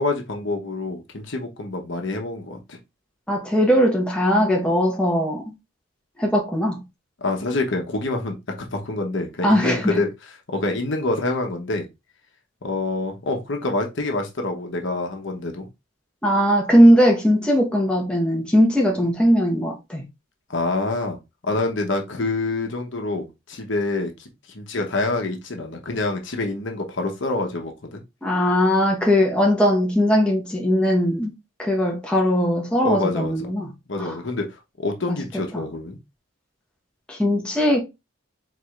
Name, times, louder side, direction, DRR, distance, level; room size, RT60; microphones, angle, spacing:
voice 1, 0.0-2.8 7.2-11.9 12.6-15.7 19.0-19.1 20.5-21.2 21.4-24.3 24.5-28.0 29.4-29.5 32.8-33.3 33.9-34.5 34.8-36.0, left 2 dB, 65° left, 1.0 m, -26 dB
voice 2, 3.3-5.4 6.2-6.8 9.4-9.9 16.2-20.0 28.2-31.3 31.6-33.7 34.0-34.1 35.1-35.2 35.5-35.6 37.1-37.8, equal, 5° left, 1.1 m, -19 dB
4.8 x 4.1 x 2.4 m
head